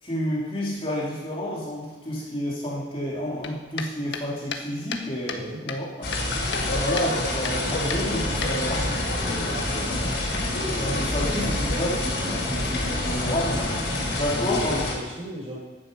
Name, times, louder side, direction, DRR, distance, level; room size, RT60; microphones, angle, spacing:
voice 1, 0.0-6.1 6.7-8.9 10.8-13.8 14.2-14.8, equal, 30° left, -5 dB, 3.5 m, -30 dB
sound 1, 3.4-5.4 5.7-6.7 7.0-7.1 7.4-7.6 7.9-8.9, left 5 dB, 80° left, 1.4 m, -34 dB
sound 2, 6.0-14.9, left 1 dB, 65° left, 4.9 m, -27 dB
voice 2, 9.2-10.0 14.3-15.6, equal, 35° right, -4 dB, 5.9 m, -35 dB
15.5 x 11.5 x 5.5 m, 1.2 s
head